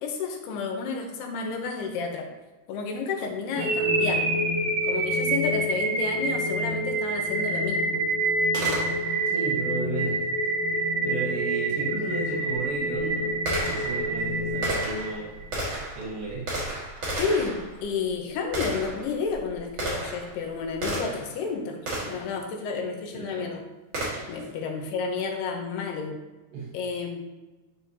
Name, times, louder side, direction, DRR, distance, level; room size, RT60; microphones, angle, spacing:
voice 1, 0.0-2.3 2.7-4.3 4.8-8.0 17.2-23.6 24.3-26.2 26.7-27.2, left 5 dB, 75° left, 2 dB, 2.9 m, -31 dB
sound 1, 3.6-15.6, right 1 dB, 60° right, 3.2 m, -27 dB
Gunshot gunfire, 8.5-9.3 11.7-11.8 12.5-21.4 21.9-22.3 23.9-24.5, right 1 dB, 40° right, 1.9 m, -33 dB
voice 2, 9.3-10.3 10.7-13.4 13.6-15.3 15.9-16.6 23.1-23.5 26.5-26.8, right 3 dB, 80° right, -4 dB, 3.5 m, -33 dB
11.5 x 5.7 x 2.8 m, 1.1 s
omnidirectional pair, 4.9 m